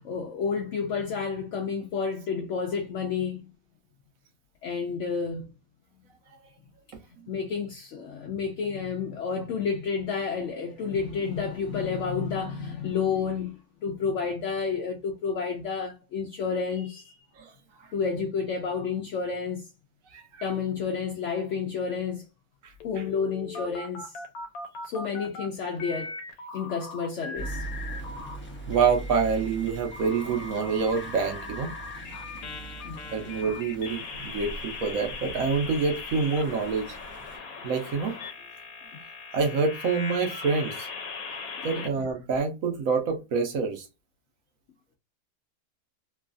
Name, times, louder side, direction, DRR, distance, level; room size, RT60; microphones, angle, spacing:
voice 1, 0.0-3.5 4.6-5.5 7.3-17.2 17.9-19.7 20.4-22.3 22.8-24.2 24.8-26.2 26.5-27.7 32.8-33.0 38.9-39.0 41.7-41.9, left 5 dB, 65° left, 0.8 m, -30 dB
voice 2, 20.1-20.5 22.6-22.7 28.7-31.7 33.1-37.0 37.6-38.2 39.3-40.9 41.2-43.9, right 5 dB, 70° right, 1.1 m, -27 dB
sound 1, 22.8-25.5 25.8-28.4 28.7-41.9, left 4 dB, 80° left, 1.1 m, -39 dB
sound 2, 27.3-37.4, right 2 dB, 15° left, 0.4 m, -41 dB
3.1 x 2.3 x 2.4 m
omnidirectional pair, 1.5 m